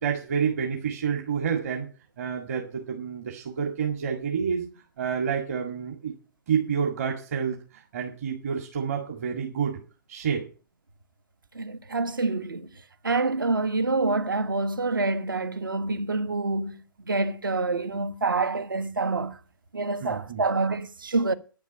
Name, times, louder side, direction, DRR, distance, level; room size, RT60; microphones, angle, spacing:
voice 1, 0.0-1.9 2.2-4.7 5.0-6.1 6.5-9.8 10.1-10.5 20.0-20.4, right 7 dB, 45° right, 2.1 m, -29 dB
voice 2, 11.5-12.7 13.0-19.4 19.7-21.3, right 3 dB, 70° right, 1.4 m, -27 dB
9.8 x 7.1 x 8.5 m
figure-of-eight pair, 125°, 12 cm